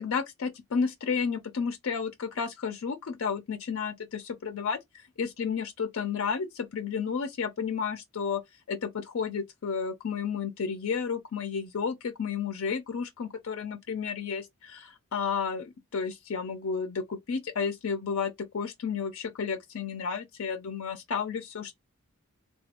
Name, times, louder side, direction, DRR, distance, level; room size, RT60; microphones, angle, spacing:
voice 1, 0.0-4.8 5.2-8.4 8.7-21.8, left 6 dB, 65° left, 0.4 m, -32 dB
3.2 x 2.2 x 2.8 m
head